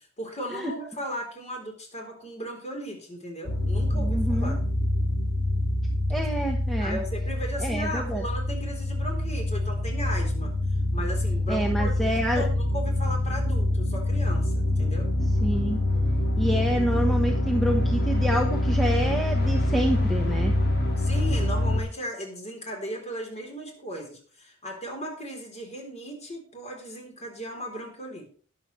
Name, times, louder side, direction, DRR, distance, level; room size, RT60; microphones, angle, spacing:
voice 1, 0.2-4.6 6.8-10.5 10.9-15.1 21.0-28.3, equal, 30° left, 1 dB, 3.6 m, -36 dB
sound 1, 3.5-21.8, left 1 dB, 50° left, 1.8 m, -25 dB
voice 2, 3.9-4.6 6.1-7.0 7.6-8.2 11.5-12.4 15.4-15.8 16.4-20.5, right 1 dB, ahead, 0 dB, 1.1 m, -28 dB
20.5 x 7.4 x 3.2 m, 0.42 s
head